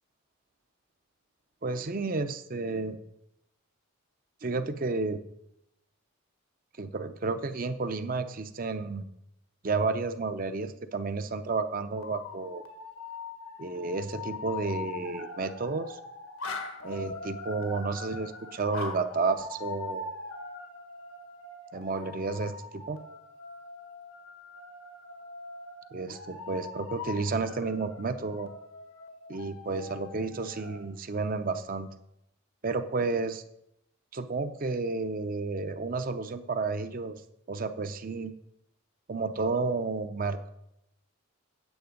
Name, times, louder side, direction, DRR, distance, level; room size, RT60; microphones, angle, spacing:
voice 1, 1.6-3.0 4.4-5.2 6.8-9.0 9.6-12.6 13.6-16.0 16.8-20.0 21.7-23.0 25.9-28.5 29.3-31.9 32.6-33.4 34.1-37.2 37.5-38.3 39.1-40.5, right 3 dB, 40° right, 10 dB, 0.5 m, -31 dB
sound 1, 11.9-30.8, left 3 dB, 80° left, 1.4 m, -42 dB
9.4 x 7.8 x 5.2 m, 0.80 s
head